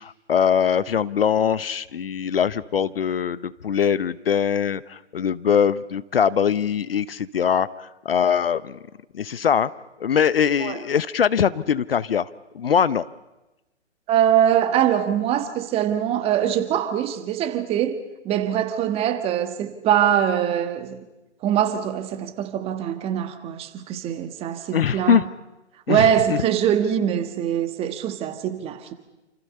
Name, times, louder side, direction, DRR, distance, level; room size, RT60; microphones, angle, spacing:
voice 1, 0.0-7.7 8.0-8.8 9.1-9.7 10.0-12.3 12.5-13.0 24.7-25.2 25.9-26.1, left 7 dB, 50° left, 0.9 m, -22 dB
voice 2, 14.1-18.0 18.2-21.0 21.4-25.3 25.9-28.9, right 10 dB, 15° right, 1.7 m, -23 dB
29.0 x 28.0 x 5.6 m
figure-of-eight pair, 130°, 36 cm